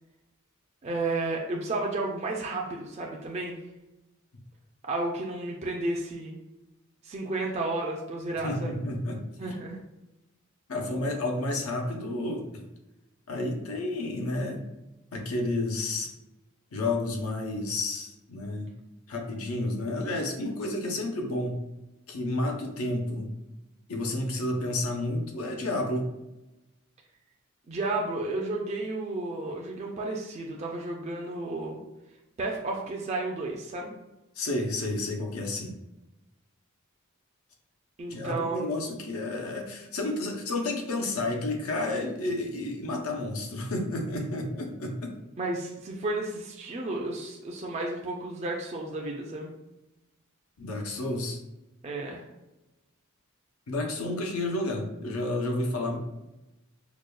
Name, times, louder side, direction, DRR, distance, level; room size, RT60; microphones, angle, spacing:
voice 1, 0.8-3.6 4.8-6.4 7.0-8.8 9.4-9.8 27.7-31.8 32.4-34.0 38.0-38.7 45.4-49.5 51.8-52.2, right 2 dB, 30° right, -1 dB, 0.3 m, -32 dB
voice 2, 8.4-9.2 10.7-12.4 13.3-14.6 15.1-16.1 16.7-18.7 19.1-21.6 22.1-23.3 23.9-26.1 34.4-35.7 38.1-45.1 50.6-51.4 53.7-56.0, left 2 dB, 90° left, 2 dB, 0.7 m, -31 dB
4.8 x 2.2 x 2.2 m, 0.98 s
head